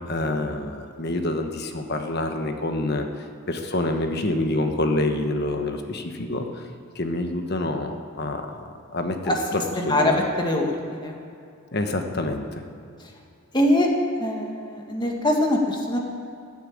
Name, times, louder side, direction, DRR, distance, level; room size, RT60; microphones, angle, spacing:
voice 1, 0.0-3.1 3.5-6.6 6.9-8.7 8.9-10.1 11.7-12.6, left 2 dB, 50° left, 5 dB, 1.2 m, -27 dB
voice 2, 9.8-11.2 13.5-13.9 14.2-16.0, left 1 dB, 20° left, 1 dB, 1.8 m, -23 dB
15.0 x 9.0 x 8.8 m, 2.4 s
head